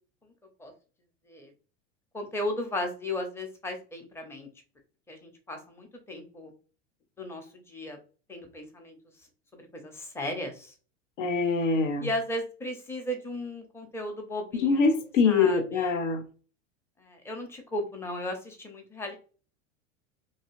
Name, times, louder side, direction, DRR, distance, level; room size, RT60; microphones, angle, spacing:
voice 1, 2.1-4.5 5.1-6.5 7.2-8.0 8.3-8.9 9.5-10.7 12.0-14.8 15.2-15.9 17.0-19.2, left 1 dB, 5° left, 0.6 m, -35 dB
voice 2, 11.2-12.1 14.6-16.2, left 4 dB, 80° left, 0.7 m, -24 dB
2.7 x 2.3 x 2.9 m
hypercardioid pair, 90°, 38 cm